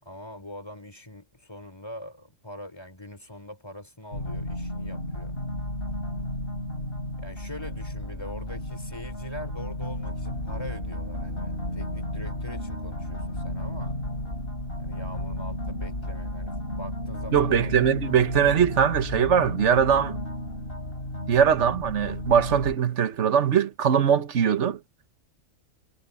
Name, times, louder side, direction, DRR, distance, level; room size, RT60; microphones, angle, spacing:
voice 1, 0.0-5.3 7.2-14.0 14.8-17.8, left 1 dB, 20° left, 4.8 m, -42 dB
sound 1, 4.1-22.8, left 1 dB, 45° left, 5.9 m, -33 dB
voice 2, 17.3-20.2 21.3-24.8, right 8 dB, 60° right, 1.5 m, -21 dB
omnidirectional pair, 1.4 m